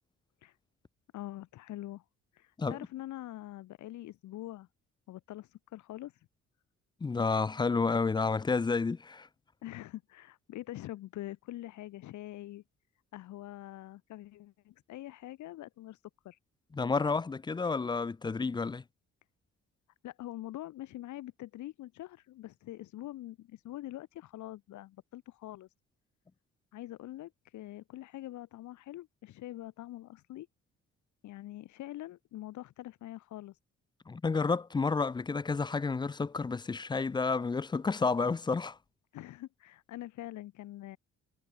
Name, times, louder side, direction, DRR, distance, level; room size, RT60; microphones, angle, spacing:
voice 1, 1.1-2.0 2.3-4.7 5.1-6.3 9.6-12.6 13.1-16.4 20.0-25.7 26.7-30.5 31.2-33.6 39.1-41.0, left 15 dB, 70° left, 0.8 m, -44 dB
voice 2, 7.0-9.3 16.7-18.8 34.1-38.8, left 4 dB, 15° left, 0.4 m, -30 dB
cardioid pair, 90°, 30 cm